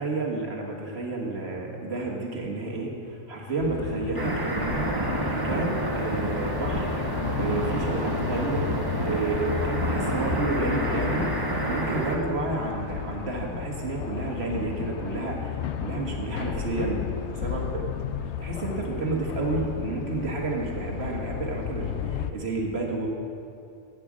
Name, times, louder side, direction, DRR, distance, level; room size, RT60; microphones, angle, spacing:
voice 1, 0.0-5.0 5.3-7.0 7.4-8.7 9.0-17.9 18.4-23.1, right 3 dB, 65° right, 0 dB, 1.7 m, -30 dB
sound 1, 3.6-22.3, left 9 dB, 75° left, 0.9 m, -33 dB
sound 2, 4.1-12.2, right 1 dB, 20° right, 1.1 m, -29 dB
9.2 x 8.8 x 7.4 m, 2.7 s
omnidirectional pair, 1.2 m